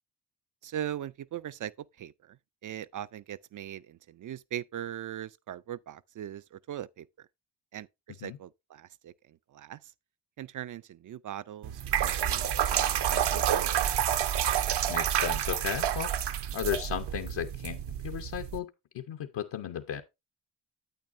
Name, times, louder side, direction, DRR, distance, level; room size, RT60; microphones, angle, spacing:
voice 1, 0.6-7.3 7.7-9.9 10.4-13.9, right 11 dB, 45° right, 0.4 m, -40 dB
sound 1, 11.6-18.6, right 10 dB, 60° right, 0.8 m, -29 dB
voice 2, 14.9-16.1 16.5-18.7 18.9-20.0, left 9 dB, 65° left, 1.0 m, -35 dB
9.2 x 8.5 x 2.5 m
supercardioid pair, 55°, 46 cm